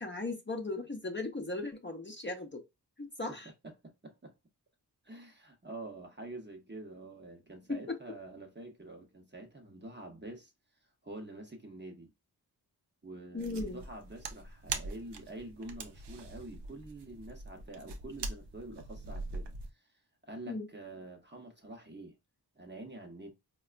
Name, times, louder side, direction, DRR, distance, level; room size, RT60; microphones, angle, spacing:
voice 1, 0.0-2.6 3.0-3.5 7.7-8.0 13.3-13.8 20.5-20.7, left 2 dB, 25° left, 0.7 m, -37 dB
voice 2, 3.6-4.3 5.0-10.5 11.0-12.1 13.0-19.8 20.2-22.2 22.6-23.3, right 2 dB, 25° right, 0.8 m, -47 dB
sound 1, 13.4-19.7, right 3 dB, 70° right, 0.6 m, -43 dB
4.1 x 2.2 x 2.4 m
cardioid pair, 45°, 42 cm